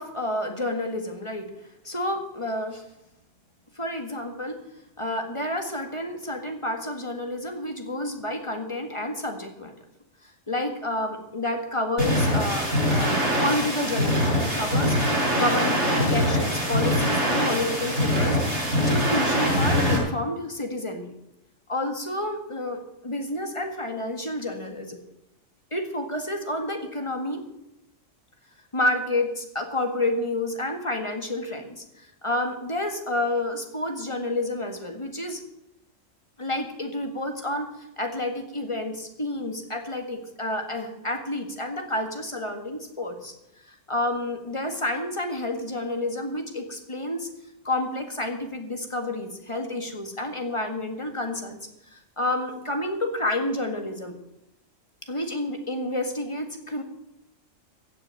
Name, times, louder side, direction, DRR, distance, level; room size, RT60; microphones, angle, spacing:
voice 1, 0.0-1.5 1.8-2.8 3.8-4.6 5.0-9.7 10.5-15.0 15.3-21.0 21.7-25.0 25.7-27.4 28.7-35.4 36.4-37.7 38.0-43.3 43.9-47.3 47.6-51.6 51.9-54.1 55.1-56.8, left 1 dB, 25° left, 4 dB, 1.8 m, -29 dB
sound 1, 12.0-20.0, equal, 65° right, 6.9 m, -23 dB
16.0 x 6.7 x 8.9 m, 0.83 s
omnidirectional pair, 1.3 m